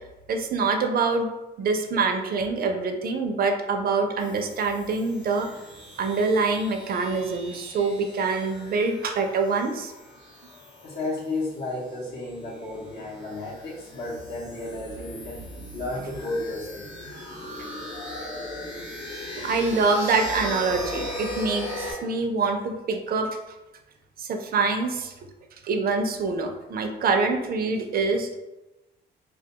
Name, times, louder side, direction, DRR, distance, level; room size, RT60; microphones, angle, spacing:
voice 1, 0.3-1.3 1.6-5.5 6.0-9.9 19.4-23.3 24.2-25.1 25.6-28.4, right 4 dB, 50° right, 4 dB, 0.4 m, -25 dB
sound 1, 4.2-21.9, left 1 dB, 85° left, 0.9 m, -39 dB
voice 2, 10.8-15.4 15.7-16.9, left 2 dB, 55° left, -5 dB, 0.7 m, -33 dB
2.2 x 2.2 x 2.7 m, 1.0 s
cardioid pair, 90°, 20 cm